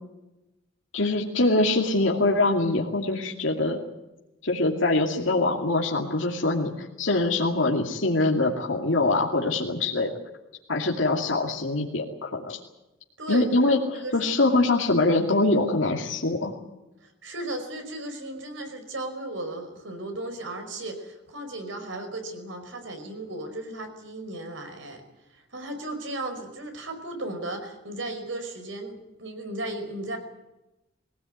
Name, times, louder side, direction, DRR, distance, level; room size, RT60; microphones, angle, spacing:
voice 1, 0.9-3.9 4.4-10.1 10.7-12.6 13.3-13.8 14.1-16.5, left 2 dB, 75° left, -1 dB, 2.6 m, -23 dB
voice 2, 13.2-14.1 17.0-25.0 25.3-30.2, right 2 dB, 75° right, 6 dB, 5.2 m, -35 dB
22.5 x 17.5 x 9.5 m, 0.98 s
head